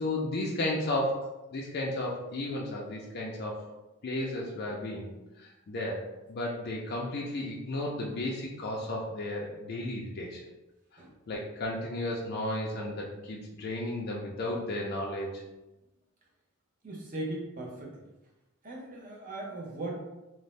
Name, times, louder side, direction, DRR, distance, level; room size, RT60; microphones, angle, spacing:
voice 1, 0.0-3.6 4.0-10.4 10.9-11.0 11.3-15.4, left 1 dB, 45° left, -2 dB, 0.4 m, -34 dB
voice 2, 16.8-18.1 18.6-19.9, right 2 dB, 40° right, -2 dB, 0.6 m, -38 dB
2.5 x 2.0 x 3.1 m, 1.0 s
head